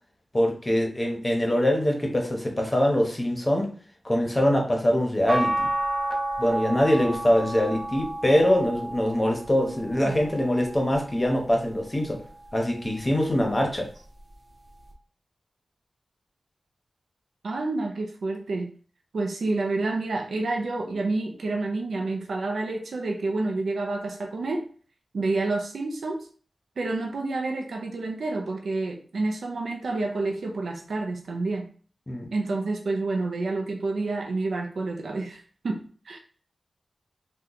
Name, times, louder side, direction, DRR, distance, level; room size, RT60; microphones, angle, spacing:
voice 1, 0.3-3.7 4.0-5.7 6.4-12.2 12.5-13.9 32.1-32.3, left 1 dB, 20° left, 1 dB, 0.8 m, -23 dB
sound 1, 5.3-11.6 12.2-13.5 14.9-15.0, right 1 dB, 35° right, 0.7 m, -32 dB
voice 2, 9.9-10.3 17.4-18.7 19.1-24.6 25.1-26.3 26.8-31.7 32.3-36.2, right 3 dB, 90° right, 2 dB, 0.4 m, -29 dB
2.8 x 2.2 x 3.8 m, 0.43 s
wide cardioid pair, 110°, 0 cm